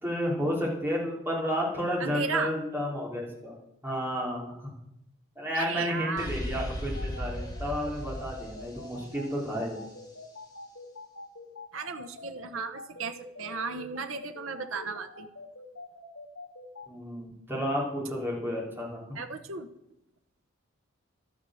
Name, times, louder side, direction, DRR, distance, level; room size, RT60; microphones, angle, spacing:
voice 1, 0.0-3.5 3.8-4.7 5.4-9.8 16.9-19.2, equal, 10° right, -3 dB, 3.3 m, -31 dB
voice 2, 2.0-2.5 5.5-6.3 11.7-15.3 19.1-19.7, right 5 dB, 70° right, 7 dB, 0.9 m, -35 dB
sound 1, 6.2-9.9, equal, 15° left, 2.2 m, -37 dB
sound 2, 6.9-16.9, left 3 dB, 65° left, 2.7 m, -45 dB
12.0 x 9.8 x 6.3 m, 0.84 s
head